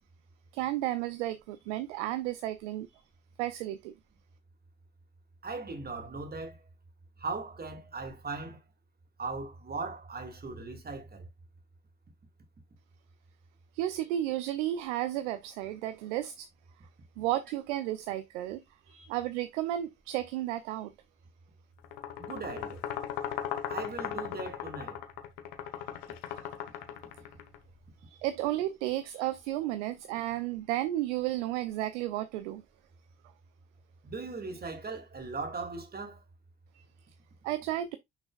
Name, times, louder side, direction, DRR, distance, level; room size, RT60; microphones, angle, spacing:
voice 1, 0.5-3.0 3.4-3.9 13.7-16.5 17.2-20.9 28.1-32.6 37.4-38.0, right 14 dB, 70° right, 0.7 m, -33 dB
voice 2, 5.4-6.6 7.2-8.6 9.2-11.3 22.2-22.9 23.7-25.0 34.0-36.2, right 3 dB, 25° right, 2.3 m, -38 dB
sound 1, 21.8-27.6, left 10 dB, 65° left, 1.2 m, -38 dB
6.4 x 6.1 x 2.4 m
figure-of-eight pair, 50°, 36 cm